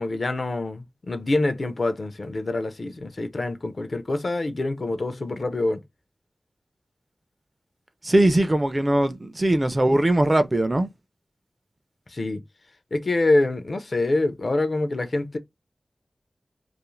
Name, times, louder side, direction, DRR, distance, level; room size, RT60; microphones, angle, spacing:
voice 1, 0.0-5.8 12.1-12.4 12.9-15.4, left 2 dB, 60° left, 0.4 m, -25 dB
voice 2, 8.0-10.9, right 1 dB, 30° right, 0.4 m, -20 dB
2.4 x 2.4 x 3.0 m
wide cardioid pair, 80°, 0 cm